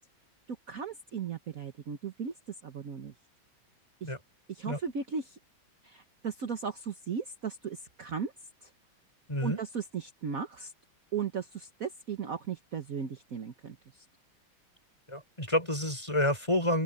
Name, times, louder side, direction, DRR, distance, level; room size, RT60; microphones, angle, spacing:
voice 1, 0.7-2.3 2.6-3.1 4.0-4.1 4.5-5.4 5.8-8.3 8.6-8.7 9.4-10.7 11.1-14.0, right 6 dB, 45° right, 1.5 m, -36 dB
voice 2, 9.3-9.6 15.1-16.8, left 1 dB, 15° left, 5.4 m, -29 dB
open air
omnidirectional pair, 2.2 m